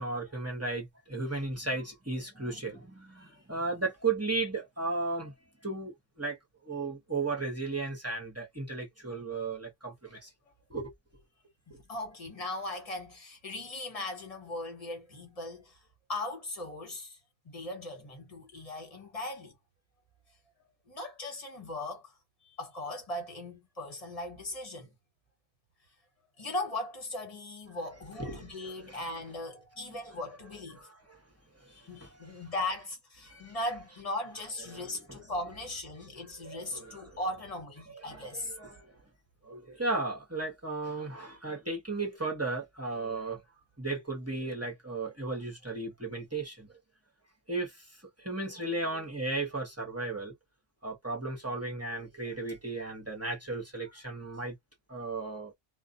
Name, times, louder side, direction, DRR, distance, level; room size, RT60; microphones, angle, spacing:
voice 1, 0.0-5.3 5.6-6.4 6.6-10.3 10.7-10.9 11.7-11.8 27.9-29.2 29.8-31.2 31.6-32.5 33.2-33.8 34.5-37.4 37.8-39.0 39.4-43.4 43.8-46.7 47.5-47.9 48.2-50.3 50.8-54.5 54.9-55.5, right 3 dB, 15° right, 0.9 m, -36 dB
voice 2, 11.9-15.8 16.1-17.2 17.4-19.5 20.9-22.1 22.4-24.9 26.4-30.9 31.7-38.5, left 2 dB, 35° left, 1.2 m, -38 dB
2.4 x 2.2 x 2.5 m
omnidirectional pair, 1.1 m